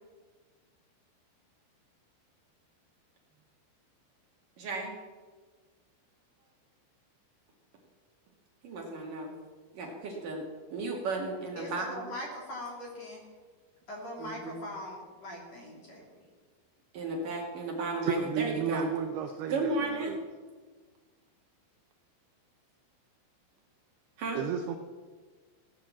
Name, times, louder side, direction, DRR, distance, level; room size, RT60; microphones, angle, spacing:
voice 1, 4.6-5.0 8.6-9.3 9.7-10.4 10.7-12.0 14.2-14.5 16.9-18.9 19.5-20.2 24.2-24.4, right 2 dB, 55° right, -1 dB, 3.0 m, -34 dB
voice 2, 11.5-13.3 13.9-16.1, left 1 dB, 40° left, -2 dB, 3.4 m, -41 dB
voice 3, 18.0-20.2 24.4-24.8, right 8 dB, 85° right, 6 dB, 2.3 m, -33 dB
17.0 x 10.5 x 7.3 m, 1.4 s
omnidirectional pair, 5.8 m